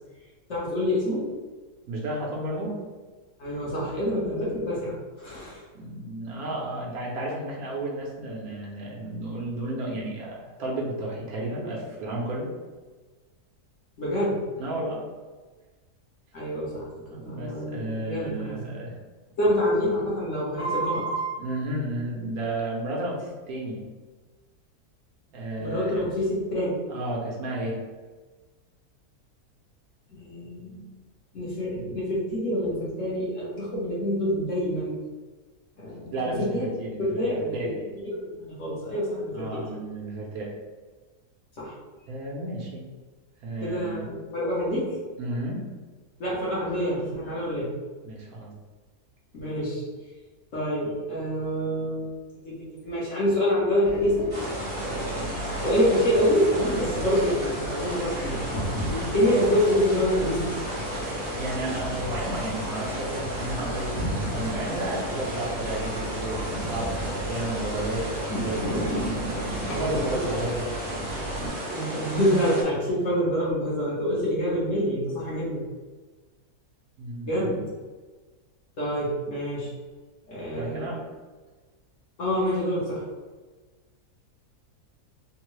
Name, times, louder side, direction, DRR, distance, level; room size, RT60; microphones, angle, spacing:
voice 1, 0.5-1.3 3.4-5.6 14.0-14.4 16.3-18.6 19.4-21.4 25.6-26.7 30.1-30.8 31.3-35.0 35.8-36.7 37.0-37.6 38.0-39.7 41.6-41.8 43.6-45.0 46.2-47.8 49.3-49.8 50.5-52.1 52.4-52.5 52.8-54.3 54.8-55.2 55.5-58.4 58.9-60.5 69.6-70.2 71.7-75.6 77.3-77.6 78.8-79.7 80.3-81.0 82.2-83.1, equal, 55° left, -7 dB, 1.2 m, -26 dB
voice 2, 1.9-2.8 5.7-12.5 14.6-15.0 17.1-18.9 21.4-23.8 25.3-26.0 26.9-27.8 36.1-37.8 39.3-40.5 42.1-42.9 43.4-44.1 45.2-45.7 48.0-48.5 61.4-68.9 69.7-70.6 77.0-77.6 80.5-81.0, right 1 dB, 70° right, -3 dB, 1.1 m, -32 dB
sound 1, 53.8-71.5, right 1 dB, 80° left, 1.3 m, -34 dB
sound 2, 54.3-72.6, right 1 dB, 30° right, 0.7 m, -34 dB
3.5 x 2.1 x 3.0 m, 1.3 s
omnidirectional pair, 1.7 m